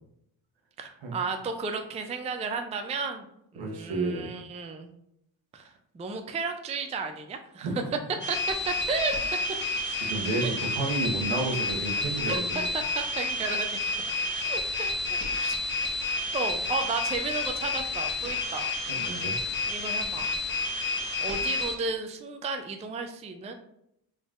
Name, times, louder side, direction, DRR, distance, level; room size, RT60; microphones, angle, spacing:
voice 1, 0.8-3.2 3.5-4.9 5.5-5.7 5.9-7.7 8.3-8.4 8.7-9.2 10.4-10.5 12.3-12.4 12.7-13.8 14.5-15.6 16.3-18.7 19.7-20.3 21.2-23.5, right 4 dB, 15° right, 6 dB, 0.3 m, -33 dB
voice 2, 3.6-4.3 7.6-7.8 9.9-12.7 18.9-19.4, right 2 dB, 70° right, 2 dB, 1.0 m, -31 dB
sound 1, 8.2-21.8, left 2 dB, 25° left, 1.1 m, -30 dB
3.9 x 3.5 x 2.4 m, 0.76 s
cardioid pair, 75°, 47 cm